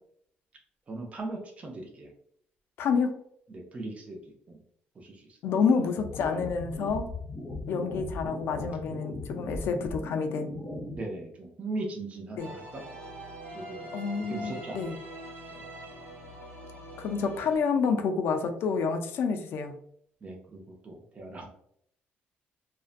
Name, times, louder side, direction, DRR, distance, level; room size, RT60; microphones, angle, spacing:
voice 1, 0.9-2.1 3.5-4.2 4.5-4.6 5.0-5.4 10.9-12.8 13.5-13.9 14.3-14.9 15.5-15.6 20.2-21.5, right 2 dB, 35° right, 0 dB, 0.5 m, -39 dB
voice 2, 2.8-3.1 5.4-7.1 7.7-10.5 12.4-12.5 13.9-15.0 17.0-19.8, left 5 dB, 70° left, 6 dB, 0.4 m, -28 dB
sound 1, 6.0-11.0, left 2 dB, 25° left, 0.7 m, -38 dB
sound 2, 12.4-17.6, right 1 dB, 75° right, 1.3 m, -43 dB
2.5 x 2.1 x 2.4 m, 0.67 s
cardioid pair, 105°, 4 cm